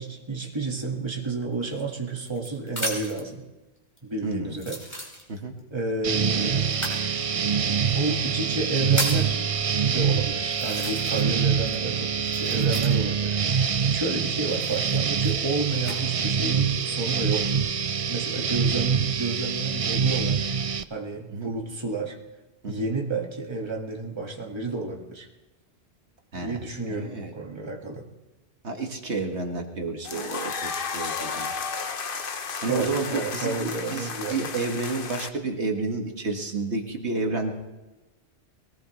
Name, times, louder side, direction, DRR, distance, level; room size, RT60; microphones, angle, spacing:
voice 1, 0.0-3.5 4.0-4.8 5.7-6.8 7.9-9.4 9.9-17.7 18.1-20.6 20.9-22.2 22.7-25.3 26.3-28.0 32.7-34.5, right 3 dB, 25° right, 0 dB, 1.9 m, -31 dB
sound 1, 1.6-3.3 4.0-4.1 4.5-5.6 6.7-7.0 7.9-8.0 8.5-9.3 10.0-10.1 10.5-11.4 11.7-13.2 14.4-16.0 16.6-17.1, equal, 15° left, 4.2 m, -34 dB
voice 2, 4.2-4.6 5.3-5.5 21.3-21.5 22.6-22.9 26.3-26.6 26.9-27.3 28.6-31.5 32.6-37.5, right 3 dB, 70° right, 2 dB, 2.0 m, -30 dB
sound 2, 6.0-20.8, right 7 dB, 45° right, 0.4 m, -25 dB
sound 3, 30.0-35.3, left 5 dB, 55° left, 1.1 m, -33 dB
22.5 x 18.5 x 3.2 m, 1.1 s
omnidirectional pair, 1.2 m